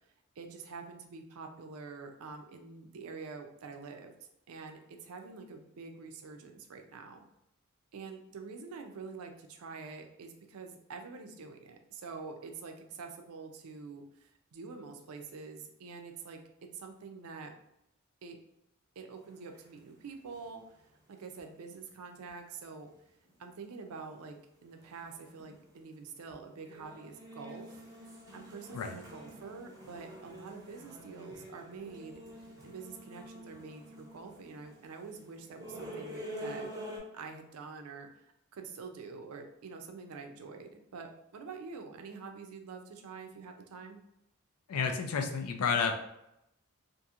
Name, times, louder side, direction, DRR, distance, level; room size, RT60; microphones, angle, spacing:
voice 1, 0.4-4.1 4.5-7.2 7.9-16.4 16.7-17.5 18.2-18.4 19.0-20.8 21.1-22.9 23.4-27.8 28.3-32.2 32.6-36.7 37.1-44.0, right 4 dB, 80° right, 5 dB, 0.4 m, -46 dB
sound 1, 19.2-20.0 20.3-20.4 20.9-21.0 21.4-21.5 21.6-21.7 22.1-22.3 22.8-22.9 23.2-23.6 24.1-24.2 24.8-25.1 25.4-25.9 26.3-26.4 26.6-37.0, equal, 15° right, 0.6 m, -47 dB
voice 2, 44.7-46.0, left 5 dB, 85° left, 5 dB, 0.4 m, -30 dB
2.8 x 2.5 x 2.4 m, 0.81 s
head